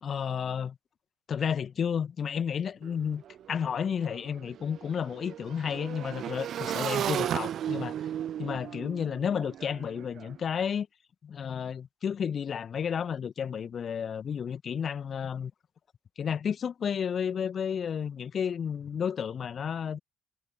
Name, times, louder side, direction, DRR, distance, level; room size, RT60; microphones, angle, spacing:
voice 1, 0.0-0.8 1.3-3.2 3.5-7.9 8.4-10.9 11.2-15.5 16.2-20.0, left 7 dB, 40° left, 2.0 m, -32 dB
Motorcycle / Engine, 2.8-2.9 3.2-10.3, right 10 dB, 50° right, 0.8 m, -35 dB
figure-of-eight pair, 50°, 0 cm